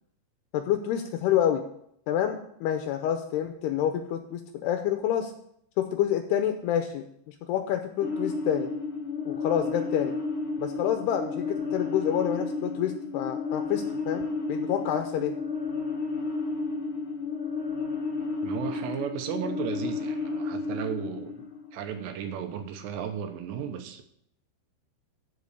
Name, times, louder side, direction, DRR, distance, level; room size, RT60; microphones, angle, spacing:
voice 1, 0.5-1.6 2.1-5.3 5.8-8.7 9.3-10.2 10.6-15.4, left 10 dB, 90° left, 6 dB, 2.4 m, -28 dB
sound 1, 8.0-22.1, left 3 dB, 65° left, 1.3 m, -32 dB
voice 2, 18.4-24.0, right 8 dB, 75° right, 7 dB, 3.0 m, -35 dB
12.5 x 5.2 x 6.6 m, 0.71 s
omnidirectional pair, 5.3 m